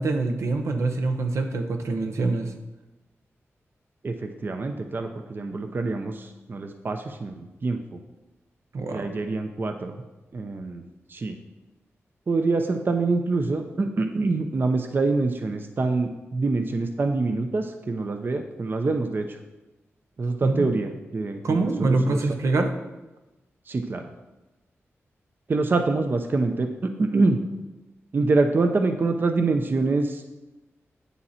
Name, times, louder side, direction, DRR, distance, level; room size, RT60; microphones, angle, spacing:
voice 1, 0.0-2.5 8.7-9.1 20.4-20.7 21.4-22.8, right 3 dB, 80° right, 5 dB, 0.9 m, -25 dB
voice 2, 4.0-8.0 8.9-9.9 10.3-10.8 11.1-11.4 12.3-19.4 20.2-22.2 23.7-24.1 25.5-27.4 28.1-30.2, right 3 dB, 45° right, 5 dB, 0.6 m, -25 dB
8.8 x 7.0 x 4.3 m, 1.1 s
wide cardioid pair, 110°, 5 cm